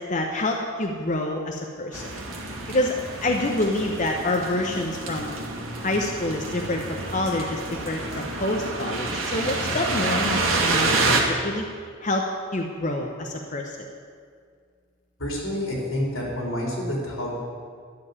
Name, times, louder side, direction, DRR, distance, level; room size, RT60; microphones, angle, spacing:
voice 1, 0.0-2.1 2.7-3.0 3.2-5.3 5.8-11.6 12.0-13.9, left 1 dB, 40° left, 1 dB, 0.9 m, -27 dB
sound 1, 1.9-11.2, right 3 dB, 80° right, 2.0 m, -28 dB
voice 2, 15.2-17.4, left 1 dB, 85° left, -2 dB, 4.0 m, -28 dB
11.5 x 7.1 x 9.7 m, 2.1 s
head